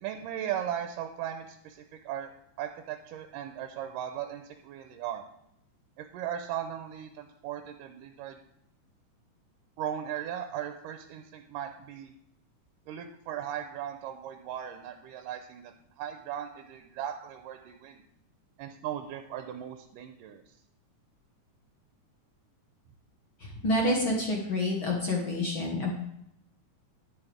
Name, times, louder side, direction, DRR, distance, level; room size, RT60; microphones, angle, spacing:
voice 1, 0.0-2.3 2.6-5.2 6.0-8.4 9.8-12.1 12.9-18.0 18.6-20.4, right 10 dB, 90° right, 6 dB, 2.3 m, -37 dB
voice 2, 23.4-25.9, left 1 dB, 50° left, -1 dB, 1.7 m, -28 dB
10.5 x 9.5 x 3.4 m, 0.78 s
omnidirectional pair, 3.7 m